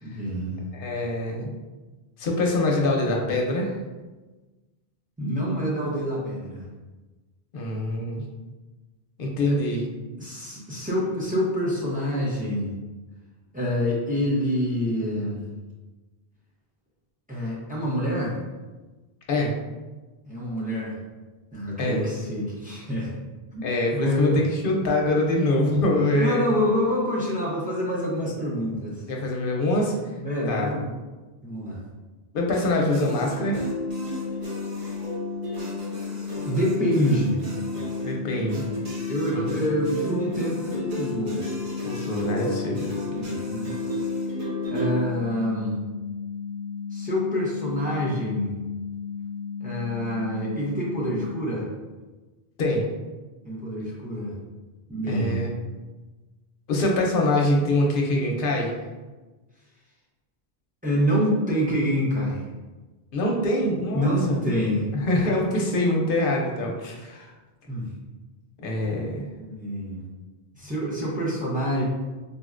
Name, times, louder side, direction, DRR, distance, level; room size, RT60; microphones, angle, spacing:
voice 1, 0.0-0.6 5.2-6.6 9.5-9.6 10.2-12.7 13.5-15.4 17.3-18.4 20.3-21.0 21.5-23.1 23.5-23.7 24.0-24.4 26.2-29.0 30.2-30.9 31.4-31.8 34.8-35.0 36.4-37.4 39.1-41.4 43.1-43.7 44.7-45.8 46.9-48.5 49.6-51.7 53.4-54.3 54.9-55.4 60.8-62.4 63.9-64.9 67.7-67.9 69.4-70.0 70.5-71.8, equal, 10° right, -6 dB, 0.5 m, -26 dB
voice 2, 0.7-1.5 2.2-3.7 7.5-8.2 9.2-9.9 19.3-19.6 21.8-22.1 23.6-26.4 29.1-29.9 30.5-30.7 32.3-33.7 38.0-38.6 39.3-39.7 41.8-42.9 52.6-52.8 55.1-55.5 56.7-58.8 63.1-64.4 64.9-67.3 68.6-69.2, left 1 dB, 65° left, 0 dB, 0.7 m, -24 dB
sound 1, 32.5-45.0, left 1 dB, 50° right, 0.8 m, -33 dB
sound 2, 33.8-51.3, left 6 dB, 75° right, 1.0 m, -34 dB
3.9 x 2.1 x 2.4 m, 1.2 s
omnidirectional pair, 1.0 m